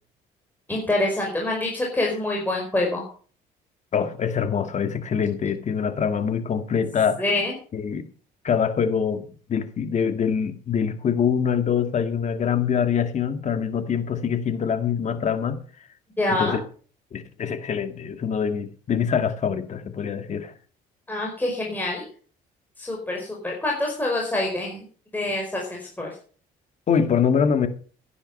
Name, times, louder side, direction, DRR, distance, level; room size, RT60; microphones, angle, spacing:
voice 1, 0.7-3.1 7.2-7.5 16.2-16.6 21.1-22.1 22.8-24.8 25.1-26.1, left 2 dB, 10° left, 4.9 m, -26 dB
voice 2, 3.9-7.3 7.7-8.1 8.4-15.6 16.3-16.6 17.1-20.5 26.9-27.7, left 7 dB, 45° left, 2.0 m, -24 dB
15.5 x 10.0 x 5.4 m
cardioid pair, 110°, 17 cm